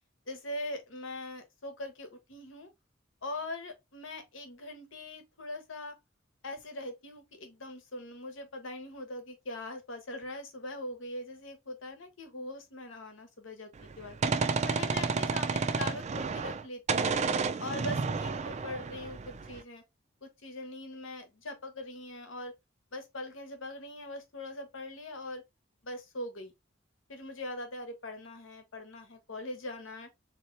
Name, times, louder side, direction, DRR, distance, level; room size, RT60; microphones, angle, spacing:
voice 1, 0.3-2.7 3.2-5.9 6.4-14.2 14.6-17.1 17.6-19.8 20.2-22.5 22.9-25.4 25.8-26.5 27.1-30.1, left 1 dB, 80° left, 1.1 m, -41 dB
Gunshot gunfire, 13.8-16.6 16.9-19.6, right 4 dB, 35° right, 0.4 m, -31 dB
3.8 x 2.9 x 3.1 m
head